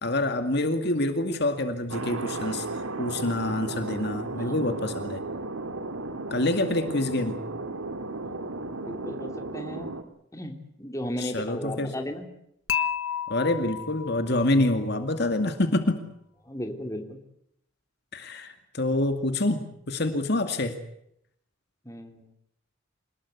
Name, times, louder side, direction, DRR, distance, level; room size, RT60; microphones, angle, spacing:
voice 1, 0.0-2.7 3.0-5.2 6.3-7.3 11.2-11.9 13.3-16.0 18.1-20.8, left 2 dB, 50° left, 7 dB, 2.3 m, -26 dB
Thunder, 1.9-10.0, right 2 dB, 85° right, 2.5 m, -34 dB
voice 2, 4.3-4.7 8.2-8.5 8.8-10.0 10.3-12.3 13.4-13.5 16.4-17.2 21.8-22.3, equal, 15° left, 5 dB, 3.1 m, -36 dB
Dishes pots and pans / Chink clink, 12.7-14.8, left 9 dB, 75° left, 1.4 m, -31 dB
27.0 x 20.0 x 8.3 m, 0.74 s
head